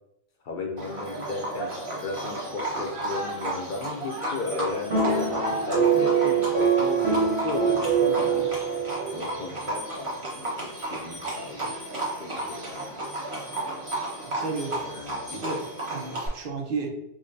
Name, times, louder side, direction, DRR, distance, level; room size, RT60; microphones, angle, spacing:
voice 1, 0.4-1.8 2.0-8.5 9.1-11.8 12.2-13.0 14.7-15.3, left 3 dB, 55° left, 1 dB, 0.7 m, -35 dB
Livestock farm animals working animals, 0.8-16.3, right 1 dB, 30° right, 1.1 m, -33 dB
sound 1, 4.9-9.4, right 6 dB, 85° right, 1.3 m, -24 dB
voice 2, 14.2-14.8 15.3-16.9, right 4 dB, 60° right, 3 dB, 0.8 m, -33 dB
4.9 x 2.1 x 2.6 m, 0.82 s
omnidirectional pair, 1.1 m